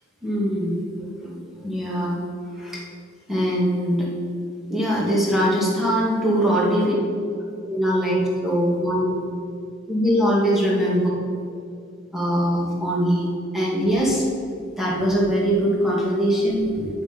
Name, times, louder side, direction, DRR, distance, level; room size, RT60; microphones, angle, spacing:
voice 1, 0.2-0.8 1.2-2.1 2.6-2.8 3.3-4.1 4.7-6.9 7.7-9.1 9.9-11.1 12.1-13.3 13.5-14.3 14.8-16.8, equal, ahead, -5 dB, 2.2 m, -22 dB
9.4 x 7.1 x 5.2 m, 2.4 s
head